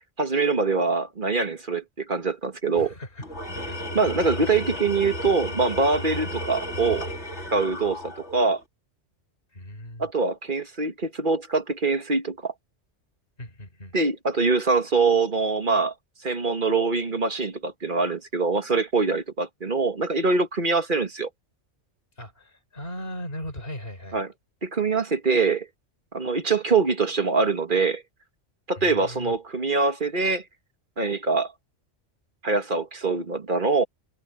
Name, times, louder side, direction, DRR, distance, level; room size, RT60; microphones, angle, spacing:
voice 1, 0.2-2.9 3.9-7.1 7.5-8.6 10.0-12.5 13.9-15.9 16.2-21.3 24.1-24.3 24.6-25.7 26.1-28.0 28.7-30.4 31.0-31.5 32.4-33.8, right 4 dB, 45° right, 1.9 m, -24 dB
voice 2, 2.8-3.2 3.5-3.8 4.1-4.3 9.5-10.1 13.4-14.0 22.2-24.2 28.8-29.3, equal, 50° left, 5.2 m, -38 dB
Tools, 3.2-8.6, left 1 dB, 65° left, 3.6 m, -34 dB
omnidirectional pair, 1.3 m